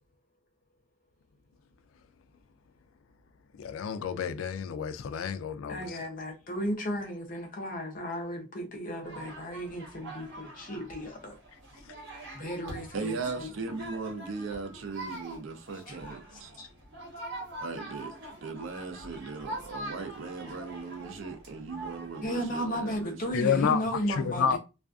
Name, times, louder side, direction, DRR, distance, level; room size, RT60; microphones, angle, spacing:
voice 1, 3.6-6.0 23.3-24.6, left 7 dB, 85° left, 0.3 m, -29 dB
voice 2, 5.7-11.4 12.3-13.5 15.9-16.0 16.3-16.7 22.2-24.6, equal, 40° left, 0.6 m, -35 dB
sound 1, 9.0-22.8, right 1 dB, 60° right, 1.0 m, -44 dB
voice 3, 12.9-16.5 17.6-23.4, right 4 dB, 75° right, 0.5 m, -38 dB
2.4 x 2.3 x 2.3 m
head